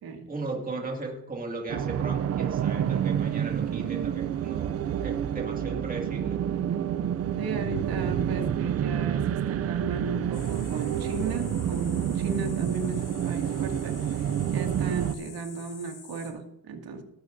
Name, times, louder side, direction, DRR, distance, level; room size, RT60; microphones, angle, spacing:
voice 1, 0.3-4.7 5.0-6.4, right 3 dB, 20° right, 0 dB, 2.2 m, -36 dB
sound 1, 1.7-15.1, right 9 dB, 35° right, 0.4 m, -28 dB
voice 2, 7.4-17.0, right 3 dB, 50° right, 3 dB, 2.3 m, -36 dB
sound 2, 10.3-16.3, left 6 dB, 40° left, 3.1 m, -48 dB
18.5 x 9.0 x 2.6 m, 0.92 s
cardioid pair, 130°, 46 cm